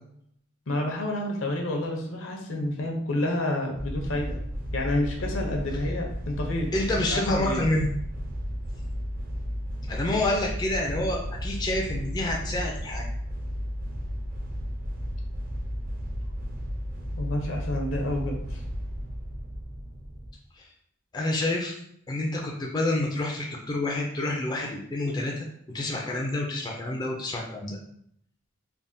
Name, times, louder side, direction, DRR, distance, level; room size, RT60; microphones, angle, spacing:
voice 1, 0.7-4.4 4.7-6.7 7.0-7.6 17.2-18.6, left 1 dB, 70° left, 1 dB, 0.6 m, -29 dB
sound 1, 3.8-20.3, equal, 45° right, 0.5 m, -33 dB
voice 2, 6.7-7.9 9.9-13.0 20.6-20.7 21.1-21.8 22.1-25.5 25.7-27.8, left 1 dB, 20° left, -1 dB, 0.3 m, -28 dB
3.3 x 2.1 x 2.6 m, 0.70 s
head